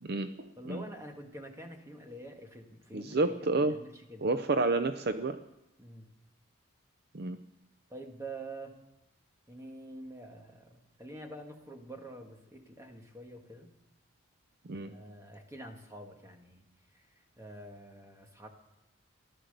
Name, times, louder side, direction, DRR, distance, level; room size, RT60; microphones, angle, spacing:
voice 1, 0.0-0.8 2.9-3.7 4.2-5.4 7.1-7.4 14.6-14.9, right 3 dB, 50° right, 9 dB, 0.6 m, -30 dB
voice 2, 0.6-4.3 5.8-6.1 7.9-8.8 9.5-13.7 14.8-16.6 16.9-18.5, right 1 dB, 15° right, 3 dB, 1.7 m, -47 dB
15.5 x 12.0 x 6.6 m, 0.88 s
head